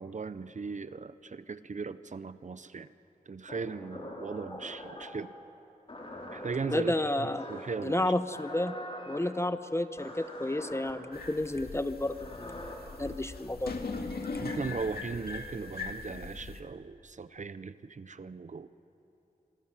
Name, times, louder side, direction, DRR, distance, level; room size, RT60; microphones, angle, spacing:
voice 1, 0.0-2.9 3.3-5.3 6.3-6.9 7.2-8.1 14.4-18.7, right 4 dB, 50° right, 13 dB, 0.7 m, -38 dB
sound 1, 3.5-5.2 5.9-6.8 7.4-7.8 8.3-9.2 10.0-10.9 12.0-12.7, left 1 dB, 35° left, 4.2 m, -44 dB
voice 2, 6.7-7.5 7.8-8.7 9.1-12.7 13.0-13.8, left 1 dB, 15° left, 11 dB, 0.9 m, -31 dB
sound 2, 11.1-16.6, left 3 dB, 75° left, 2.1 m, -40 dB
27.5 x 22.5 x 7.4 m, 2.9 s
wide cardioid pair, 110°, 16 cm